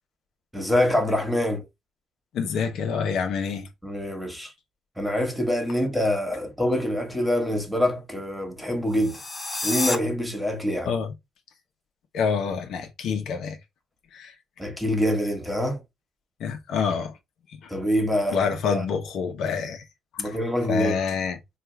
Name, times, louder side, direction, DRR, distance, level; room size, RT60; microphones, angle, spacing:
voice 1, 0.5-1.6 3.8-4.5 5.0-9.2 9.6-10.9 14.6-15.8 17.7-18.4 18.7-18.8 20.2-21.0, left 1 dB, ahead, 1.4 m, -25 dB
voice 2, 2.3-3.7 10.8-11.1 12.1-13.6 14.1-14.4 16.4-17.2 17.5-17.7 18.3-19.9 20.1-20.4 20.7-21.4, left 6 dB, 80° left, 0.9 m, -27 dB
sound 1, 8.9-10.0, left 2 dB, 25° left, 1.2 m, -29 dB
4.5 x 2.5 x 3.3 m
cardioid pair, 90°, 0 cm